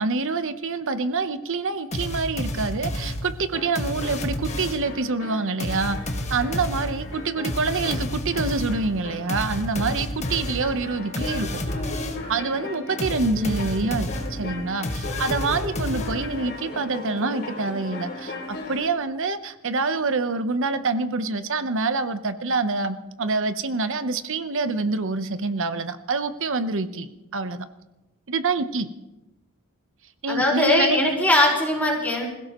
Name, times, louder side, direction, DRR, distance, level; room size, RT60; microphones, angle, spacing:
voice 1, 0.0-6.0 6.3-11.6 12.3-27.7 28.3-28.9 30.2-31.0, right 3 dB, 60° right, 11 dB, 0.9 m, -26 dB
sound 1, 1.9-5.0 5.6-12.3 13.0-16.5, left 1 dB, 30° left, 1.5 m, -31 dB
sound 2, 3.5-19.0, left 2 dB, 50° left, 3.5 m, -37 dB
voice 2, 30.3-32.3, left 1 dB, 10° left, -3 dB, 4.9 m, -20 dB
26.0 x 16.5 x 3.1 m, 1.0 s
head